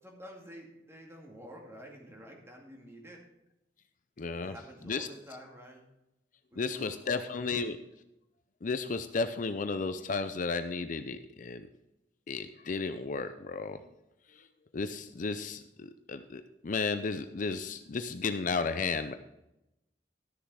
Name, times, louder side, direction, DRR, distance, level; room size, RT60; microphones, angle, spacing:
voice 1, 0.0-3.2 4.3-5.8 6.5-7.7, equal, 15° right, 0 dB, 2.3 m, -50 dB
voice 2, 4.2-4.5 4.9-5.1 6.6-7.8 8.6-11.7 12.3-13.8 14.7-19.2, left 4 dB, 45° left, 10 dB, 0.5 m, -33 dB
12.5 x 6.8 x 4.8 m, 0.91 s
head